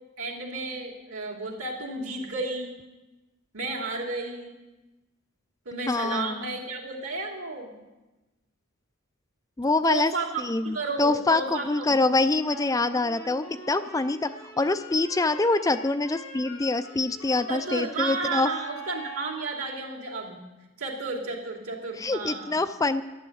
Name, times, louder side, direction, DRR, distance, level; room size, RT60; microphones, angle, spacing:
voice 1, 0.2-2.7 3.5-4.5 5.6-7.7 9.8-12.0 17.5-20.4 20.8-22.6, right 3 dB, 85° right, 0 dB, 2.7 m, -32 dB
voice 2, 5.9-6.5 9.6-10.1 10.4-14.3 14.6-18.5 22.0-23.0, left 3 dB, 15° left, 11 dB, 0.4 m, -25 dB
Wind instrument woodwind instrument, 12.4-19.4, right 1 dB, 80° left, 3.3 m, -44 dB
11.5 x 9.9 x 7.8 m, 1.1 s
head